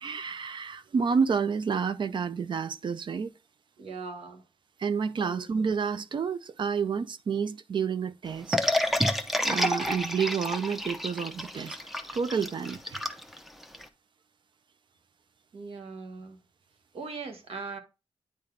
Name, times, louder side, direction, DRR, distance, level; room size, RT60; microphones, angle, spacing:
voice 1, 0.0-3.3 4.8-8.6 9.4-11.8 12.1-13.0, right 6 dB, 55° right, 0.5 m, -29 dB
voice 2, 3.8-4.4 5.2-5.5 15.5-16.4 16.9-17.8, right 4 dB, 85° right, 1.3 m, -39 dB
sound 1, 8.5-13.8, left 1 dB, ahead, 0.7 m, -29 dB
9.3 x 4.0 x 3.3 m
wide cardioid pair, 110°, 10 cm